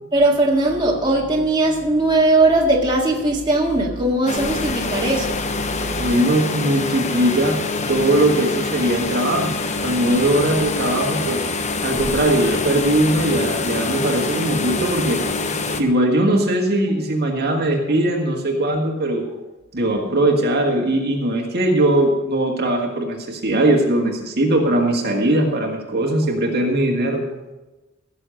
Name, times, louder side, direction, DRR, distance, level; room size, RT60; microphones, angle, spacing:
voice 1, 0.1-5.4, right 2 dB, 20° right, -2 dB, 1.9 m, -18 dB
sound 1, 4.3-15.8, left 3 dB, 35° left, 0.9 m, -25 dB
voice 2, 6.0-7.6 7.9-9.5 9.8-11.4 11.8-15.2 15.8-19.2 19.7-27.2, right 1 dB, 50° right, 1 dB, 1.8 m, -20 dB
16.5 x 6.9 x 6.5 m, 1.1 s
head